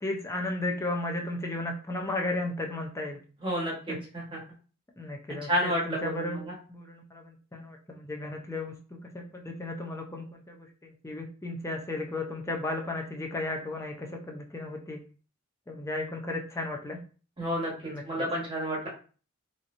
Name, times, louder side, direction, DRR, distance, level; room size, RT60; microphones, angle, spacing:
voice 1, 0.0-3.2 3.9-4.0 5.0-6.4 6.7-8.7 9.1-15.0 15.7-17.0 17.8-18.0, left 2 dB, 15° left, 1 dB, 0.5 m, -34 dB
voice 2, 3.4-4.4 5.5-6.5 17.4-17.7 18.0-18.9, equal, 25° right, -4 dB, 1.2 m, -30 dB
3.1 x 2.8 x 2.5 m, 0.39 s
head